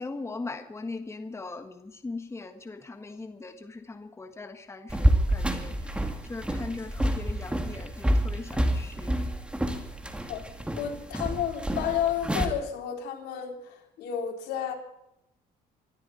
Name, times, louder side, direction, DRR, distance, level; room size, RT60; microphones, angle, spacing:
voice 1, 0.0-9.2 9.5-9.8, left 3 dB, 15° left, 7 dB, 1.5 m, -40 dB
sound 1, 4.9-12.5, right 1 dB, 5° right, 2.3 m, -28 dB
voice 2, 10.8-14.7, left 9 dB, 80° left, 2 dB, 4.0 m, -31 dB
24.5 x 13.0 x 4.3 m, 0.80 s
cardioid pair, 110°, 17 cm